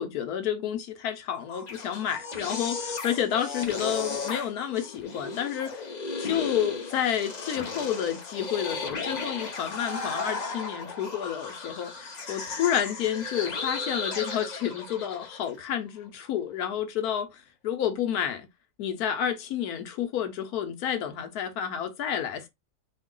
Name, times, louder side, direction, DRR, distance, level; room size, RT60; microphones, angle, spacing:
voice 1, 0.0-5.9 6.2-17.3 17.6-18.5 18.8-22.5, left 9 dB, 75° left, 1.2 m, -30 dB
sound 1, 1.4-15.5, left 4 dB, 45° left, 0.5 m, -35 dB
4.5 x 2.3 x 3.7 m
omnidirectional pair, 1.7 m